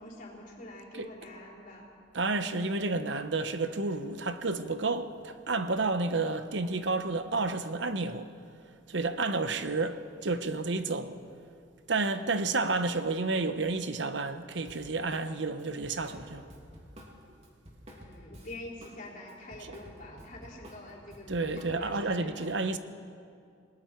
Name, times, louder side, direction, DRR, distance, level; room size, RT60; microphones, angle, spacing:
voice 1, 0.0-1.9 17.9-22.5, left 1 dB, 50° left, 4.3 m, -46 dB
voice 2, 2.1-8.3 8.9-11.2 11.9-16.5 21.3-22.8, right 3 dB, 80° right, 1.0 m, -30 dB
Drum kit, 14.7-15.3 15.6-19.0 19.3-22.0, equal, 35° right, 2.9 m, -50 dB
28.5 x 20.0 x 4.6 m
head